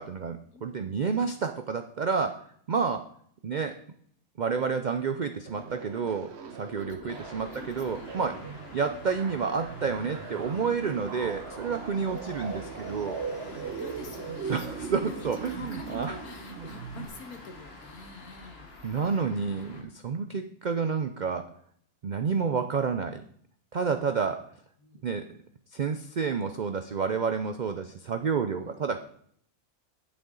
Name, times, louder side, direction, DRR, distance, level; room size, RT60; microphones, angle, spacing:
voice 1, 0.0-2.4 2.7-3.1 3.4-3.8 4.4-8.4 8.7-13.2 14.5-16.1 16.5-16.6 18.8-21.5 22.0-23.2 23.7-24.4 25.0-25.3 25.7-29.0, right 5 dB, 80° right, 8 dB, 0.4 m, -30 dB
sound 1, 5.5-17.1, right 6 dB, 50° right, 1.0 m, -40 dB
voice 2, 6.7-7.2 7.5-8.6 11.9-12.2 13.5-18.7 19.4-19.9 24.8-25.1 28.6-28.8, left 3 dB, 80° left, 4 dB, 2.0 m, -48 dB
sound 2, 7.1-19.8, left 3 dB, 45° left, 1.8 m, -46 dB
9.4 x 8.5 x 3.9 m, 0.64 s
omnidirectional pair, 1.5 m